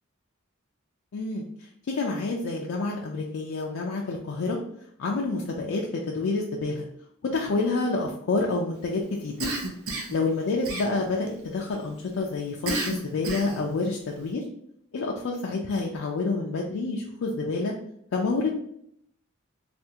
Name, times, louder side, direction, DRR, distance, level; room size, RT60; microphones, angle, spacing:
voice 1, 1.1-4.6 5.0-6.8 7.2-9.5 10.1-14.4 14.9-17.8 18.1-18.5, left 3 dB, 65° left, -1 dB, 0.4 m, -28 dB
Cough, 9.4-10.2 10.6-11.3 12.7-13.7, right 2 dB, 80° right, 0.6 m, -31 dB
3.4 x 2.4 x 2.8 m, 0.71 s
head